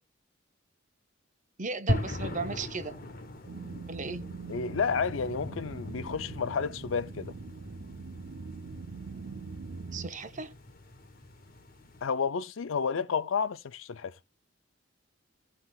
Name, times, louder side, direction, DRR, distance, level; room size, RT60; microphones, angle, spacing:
voice 1, 1.6-3.0 3.9-4.2 9.9-10.5, right 3 dB, 40° right, 0.9 m, -36 dB
sound 1, 1.9-12.0, left 1 dB, 50° left, 1.6 m, -39 dB
sound 2, 3.5-10.1, right 4 dB, 75° right, 0.5 m, -43 dB
voice 2, 4.5-7.3 12.0-14.1, left 5 dB, 80° left, 0.5 m, -31 dB
17.0 x 5.8 x 2.3 m
head